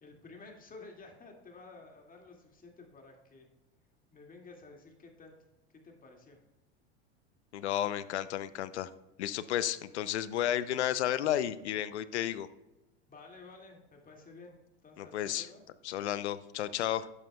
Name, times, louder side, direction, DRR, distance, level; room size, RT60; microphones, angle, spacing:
voice 1, 0.0-3.5 4.1-5.4 5.8-6.4 13.1-15.6, left 3 dB, 25° left, 2 dB, 2.2 m, -52 dB
voice 2, 7.5-8.9 9.2-12.5 15.0-15.5 15.8-17.1, left 11 dB, 85° left, 15 dB, 0.6 m, -32 dB
11.0 x 7.6 x 2.3 m, 1.0 s
hypercardioid pair, 90°, 33 cm